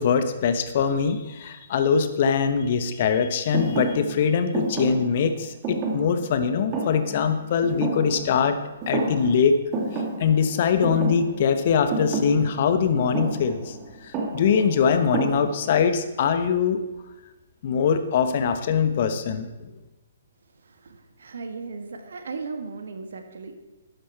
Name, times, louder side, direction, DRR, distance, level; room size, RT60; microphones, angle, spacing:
voice 1, 0.0-8.6 8.9-9.6 9.9-13.8 14.0-16.8 17.6-19.7, left 6 dB, 45° left, 9 dB, 1.1 m, -22 dB
Thump thud, 3.5-8.5 8.8-9.4 9.7-15.9, right 3 dB, 25° right, 2.3 m, -30 dB
voice 2, 20.6-23.6, right 4 dB, 65° right, 7 dB, 1.6 m, -36 dB
12.5 x 10.0 x 4.4 m, 1.1 s
figure-of-eight pair, 125°, 0 cm